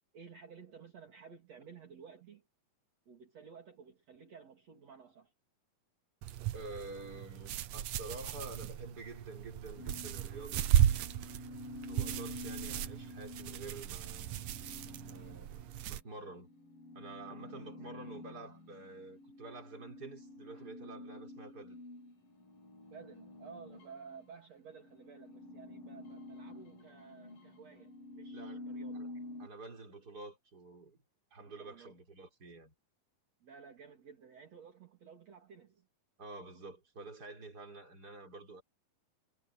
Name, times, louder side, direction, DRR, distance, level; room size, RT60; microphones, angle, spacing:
voice 1, 0.1-2.4 3.1-5.3 17.5-17.7 22.9-29.0 31.4-32.0 33.4-35.9, right 6 dB, 50° right, 4.2 m, -54 dB
sound 1, 6.2-16.0, right 12 dB, 70° right, 1.8 m, -35 dB
voice 2, 6.5-10.6 11.9-14.4 15.1-16.5 16.9-21.8 28.3-28.7 28.9-29.1 29.4-31.0 31.3-32.7 36.2-38.6, right 2 dB, 25° right, 5.3 m, -48 dB
sound 2, 9.8-24.4 24.7-29.5, left 2 dB, 75° left, 9.7 m, -49 dB
omnidirectional pair, 4.0 m